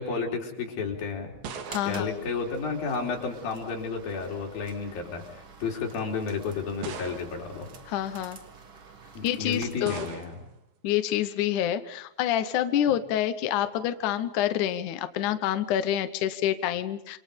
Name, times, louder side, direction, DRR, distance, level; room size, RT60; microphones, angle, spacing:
voice 1, 0.0-1.3 1.8-7.7 9.1-10.5, left 5 dB, 55° left, 1 dB, 5.6 m, -32 dB
sound 1, 0.8-3.2 4.2-4.7 5.5-5.6 6.8-7.6 9.9-10.6, right 6 dB, 80° right, 4.6 m, -41 dB
sound 2, 1.6-10.4, right 5 dB, 45° right, 1.8 m, -48 dB
voice 2, 1.7-2.1 7.9-8.4 9.2-10.1 10.8-17.2, left 11 dB, 75° left, 10 dB, 1.8 m, -27 dB
27.5 x 27.0 x 5.3 m, 0.79 s
omnidirectional pair, 5.0 m